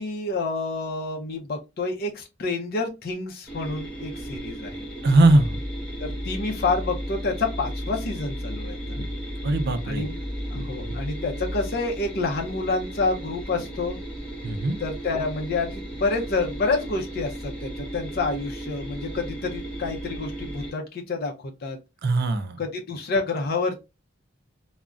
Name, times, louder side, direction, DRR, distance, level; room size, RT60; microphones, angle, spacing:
voice 1, 0.0-4.9 6.0-9.1 9.8-10.1 10.5-14.0 14.8-21.3 21.6-21.8 22.6-23.8, left 3 dB, 50° left, 0.5 m, -28 dB
sound 1, 3.5-20.7, right 1 dB, 5° left, 0.9 m, -36 dB
voice 2, 5.0-5.6 9.4-10.2 10.9-11.0 14.4-14.8 22.0-22.6, right 2 dB, 50° right, 0.4 m, -20 dB
sound 2, 5.1-11.9, left 1 dB, 30° right, 1.8 m, -35 dB
3.6 x 2.1 x 2.3 m
head